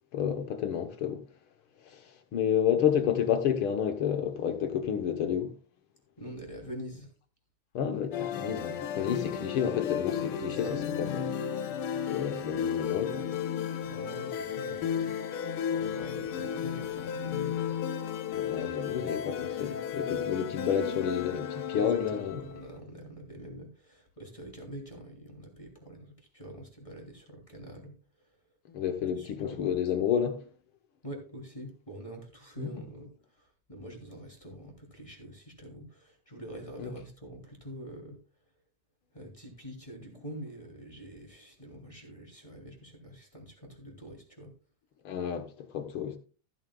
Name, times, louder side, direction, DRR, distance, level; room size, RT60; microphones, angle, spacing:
voice 1, 0.1-1.2 1.8-5.5 7.7-11.2 12.0-13.3 18.3-22.4 28.7-30.4 32.6-32.8 36.8-36.9 45.0-46.2, left 8 dB, 65° left, 1.4 m, -30 dB
voice 2, 6.2-7.1 10.4-10.8 13.8-15.4 15.7-17.7 21.7-27.9 29.2-29.7 31.0-38.2 39.1-44.5, equal, 10° left, 2.6 m, -45 dB
sound 1, 8.1-22.7, left 8 dB, 85° left, 1.2 m, -34 dB
15.0 x 10.5 x 2.3 m
omnidirectional pair, 3.6 m